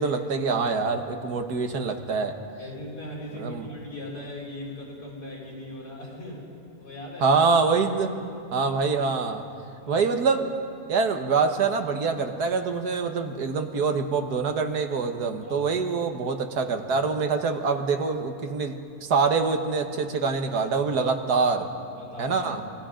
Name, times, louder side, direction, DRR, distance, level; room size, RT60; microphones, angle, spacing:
voice 1, 0.0-2.4 3.4-3.7 7.2-8.2 8.5-9.4 9.9-10.5 10.9-18.8 19.0-21.7 22.2-22.6, right 4 dB, 80° right, 6 dB, 1.8 m, -25 dB
voice 2, 2.6-6.5 6.8-7.3 8.5-8.8 9.8-10.1 15.4-15.6 21.9-22.7, left 1 dB, 80° left, -4 dB, 6.3 m, -39 dB
28.0 x 21.0 x 5.1 m, 2.5 s
omnidirectional pair, 1.7 m